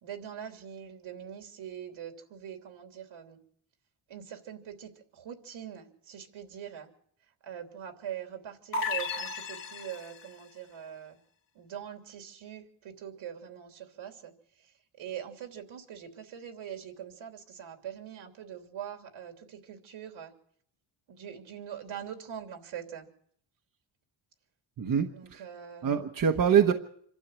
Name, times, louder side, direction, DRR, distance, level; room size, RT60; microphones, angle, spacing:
voice 1, 0.0-3.4 4.1-6.9 7.4-11.2 11.5-14.3 14.6-14.7 15.0-20.3 21.1-23.1 25.1-25.9, right 9 dB, 75° right, 4 dB, 3.3 m, -43 dB
sound 1, 8.7-10.4, left 4 dB, 45° left, 2.0 m, -34 dB
voice 2, 24.8-25.4 25.8-26.7, right 8 dB, 45° right, 4 dB, 1.2 m, -24 dB
26.5 x 12.5 x 8.2 m, 0.64 s
cardioid pair, 150°, 48 cm